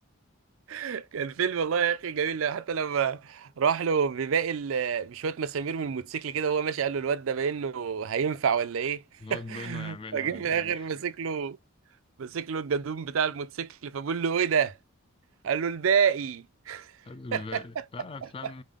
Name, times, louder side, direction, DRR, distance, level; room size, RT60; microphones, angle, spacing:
voice 1, 0.7-9.0 9.3-11.6 12.2-14.7 15.4-16.9 17.3-17.6, right 7 dB, 70° right, 0.4 m, -28 dB
voice 2, 9.2-10.9 17.0-18.6, left 3 dB, 25° left, 0.4 m, -41 dB
5.0 x 2.2 x 3.5 m
head